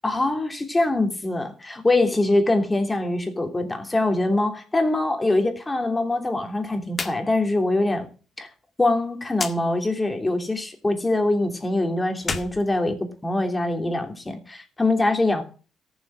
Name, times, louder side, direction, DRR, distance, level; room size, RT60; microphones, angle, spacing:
voice 1, 0.0-8.1 8.4-8.5 8.8-15.4, left 2 dB, 20° left, 5 dB, 2.9 m, -23 dB
sound 1, 6.9-7.2 7.5-7.6 9.3-9.6 12.1-13.5, left 4 dB, 35° left, 1.7 m, -31 dB
14.0 x 7.3 x 6.2 m, 0.38 s
cardioid pair, 90°, 0 cm